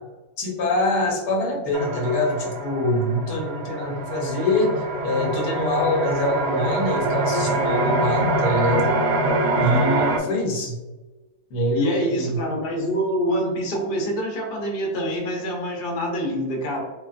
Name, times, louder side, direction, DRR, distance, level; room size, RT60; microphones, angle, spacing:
voice 1, 0.4-8.9 9.6-10.8 11.5-12.4, left 1 dB, 85° left, -1 dB, 1.3 m, -24 dB
sound 1, 1.7-10.2, right 2 dB, 75° right, 0.6 m, -24 dB
voice 2, 11.7-16.8, equal, 45° left, -1 dB, 0.8 m, -25 dB
3.2 x 2.4 x 2.4 m, 1.1 s
omnidirectional pair, 1.6 m